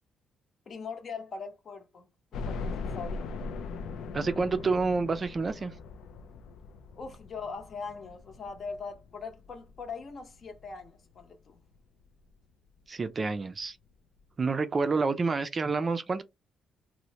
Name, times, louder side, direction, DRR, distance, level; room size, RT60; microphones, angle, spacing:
voice 1, 0.7-3.3 6.9-11.6, left 5 dB, 50° left, 0.8 m, -41 dB
sound 1, 2.3-11.2 11.7-11.8 12.2-12.3 13.5-13.6 13.9-14.0, left 4 dB, 80° left, 0.3 m, -40 dB
voice 2, 4.1-5.7 12.9-13.8 14.4-16.2, right 4 dB, 35° right, 0.3 m, -28 dB
3.0 x 2.1 x 2.8 m
cardioid pair, 90°, 0 cm